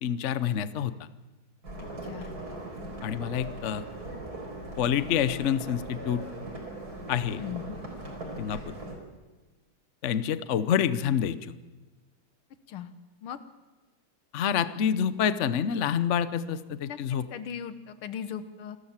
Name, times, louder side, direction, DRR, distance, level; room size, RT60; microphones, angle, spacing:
voice 1, 0.0-0.9 3.0-3.8 4.8-6.2 7.1-7.4 8.4-8.6 10.0-11.5 14.3-17.3, left 8 dB, 65° left, 13 dB, 0.7 m, -27 dB
sound 1, 1.6-9.0, right 1 dB, 45° right, 5.0 m, -40 dB
voice 2, 7.4-7.8 12.7-12.9 13.2-13.4 16.9-17.0 17.3-18.8, left 8 dB, 80° left, 11 dB, 2.0 m, -38 dB
28.0 x 13.0 x 7.4 m, 1.2 s
omnidirectional pair, 2.3 m